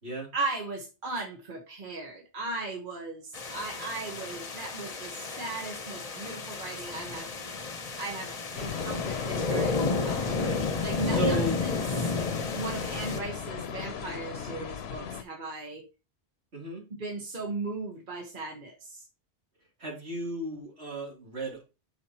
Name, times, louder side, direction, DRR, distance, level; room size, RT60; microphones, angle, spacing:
voice 1, 0.3-7.3 8.0-10.3 10.8-11.8 12.5-15.8 17.0-19.1, right 3 dB, 50° right, 1 dB, 1.4 m, -37 dB
sound 1, 3.3-13.2, left 4 dB, 40° left, 0.9 m, -32 dB
sound 2, 8.6-15.2, left 8 dB, 75° left, 0.9 m, -37 dB
voice 2, 10.2-11.6 16.5-16.9 19.8-21.7, right 1 dB, 80° right, -2 dB, 3.2 m, -35 dB
8.6 x 5.5 x 2.9 m, 0.29 s
omnidirectional pair, 1.1 m